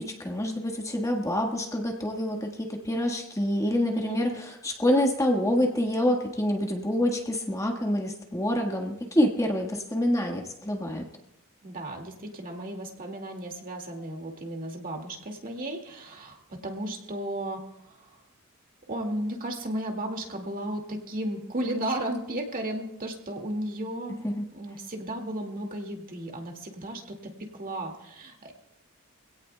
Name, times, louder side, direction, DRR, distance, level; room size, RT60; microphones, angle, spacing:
voice 1, 0.0-11.0 24.2-24.4, left 1 dB, 15° left, 1 dB, 1.5 m, -27 dB
voice 2, 11.6-18.1 18.9-24.2 24.5-28.6, right 1 dB, 40° right, 2 dB, 2.2 m, -34 dB
25.0 x 17.5 x 2.3 m, 0.85 s
head